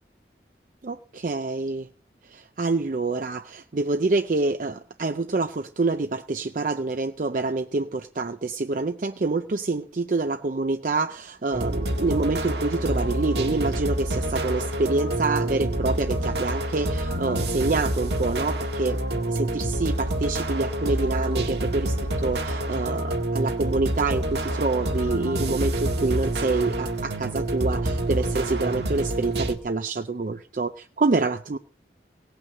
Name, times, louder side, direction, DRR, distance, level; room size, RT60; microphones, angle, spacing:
voice 1, 0.8-1.9 2.3-19.0 19.3-31.6, right 3 dB, 45° right, 8 dB, 0.5 m, -27 dB
sound 1, 11.5-29.6, right 1 dB, 70° right, 1.6 m, -27 dB
17.5 x 5.9 x 6.5 m, 0.42 s
head